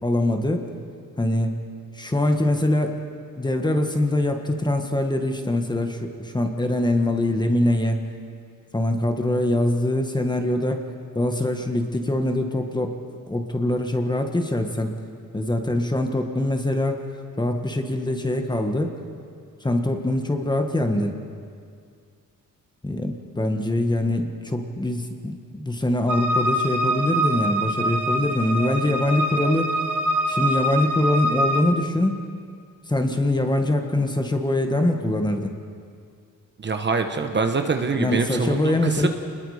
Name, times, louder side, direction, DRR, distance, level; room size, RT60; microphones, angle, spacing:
voice 1, 0.0-0.7 1.2-1.6 1.9-3.0 3.4-8.0 8.7-10.8 11.1-13.0 13.3-14.9 15.3-17.0 17.4-19.0 19.6-21.2 22.8-29.8 30.3-32.2 32.9-35.6 38.0-39.1, left 1 dB, 10° left, 4 dB, 1.5 m, -23 dB
sound 1, 26.1-31.6, equal, 65° right, 1.7 m, -24 dB
voice 2, 36.6-39.1, right 4 dB, 30° right, 6 dB, 1.2 m, -24 dB
29.0 x 21.0 x 5.0 m, 2.2 s
wide cardioid pair, 150°, 34 cm